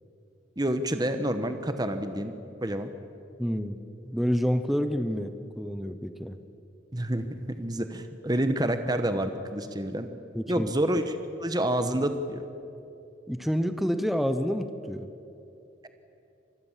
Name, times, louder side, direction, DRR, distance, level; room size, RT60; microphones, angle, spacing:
voice 1, 0.6-2.3 2.6-2.9 6.9-10.1 10.5-11.0 11.4-12.5, right 1 dB, 20° right, 9 dB, 1.2 m, -28 dB
voice 2, 3.4-3.8 4.1-6.4 10.3-10.7 13.3-15.1, equal, ahead, 9 dB, 0.8 m, -28 dB
25.5 x 20.5 x 7.4 m, 2.8 s
head